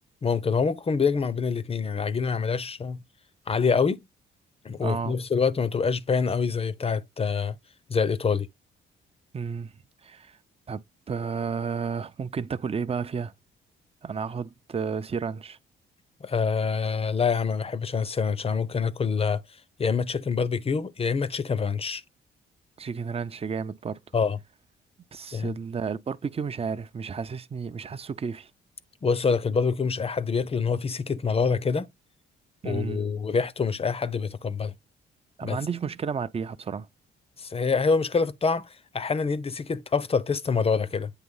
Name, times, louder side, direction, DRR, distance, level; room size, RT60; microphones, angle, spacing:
voice 1, 0.2-3.0 3.5-4.0 4.6-7.6 7.9-8.5 16.2-19.4 19.8-22.0 24.1-24.4 25.3-25.5 29.0-31.9 32.6-34.7 35.4-35.6 37.4-41.1, left 5 dB, 30° left, 0.7 m, -26 dB
voice 2, 4.8-5.2 9.3-9.7 10.0-10.4 10.7-13.3 14.0-15.6 22.8-24.0 25.1-28.5 32.6-33.0 35.4-36.9, right 6 dB, 30° right, 0.6 m, -32 dB
8.3 x 2.9 x 5.5 m
cardioid pair, 90°, 20 cm